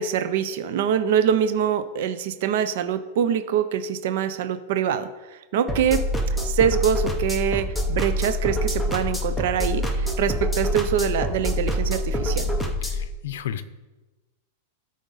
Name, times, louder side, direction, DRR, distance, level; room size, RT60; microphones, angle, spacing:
voice 1, 0.0-5.1 5.5-6.1 6.4-12.5, right 8 dB, 50° right, 11 dB, 0.5 m, -24 dB
sound 1, 5.7-13.1, equal, ahead, 0.6 m, -26 dB
voice 2, 12.8-13.6, left 10 dB, 65° left, 12 dB, 0.6 m, -33 dB
13.0 x 5.0 x 3.9 m, 1.1 s
supercardioid pair, 175°, 0 cm